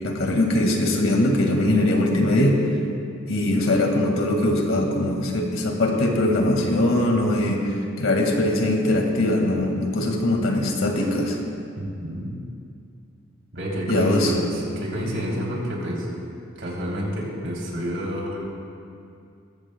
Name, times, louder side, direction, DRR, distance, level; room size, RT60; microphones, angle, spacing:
voice 1, 0.0-2.6 3.3-11.4 13.9-14.3, left 1 dB, 90° left, 1 dB, 2.0 m, -21 dB
voice 2, 11.8-12.4 13.5-16.1 16.6-18.4, equal, 70° right, -3 dB, 3.3 m, -29 dB
21.5 x 14.5 x 2.3 m, 2.4 s
head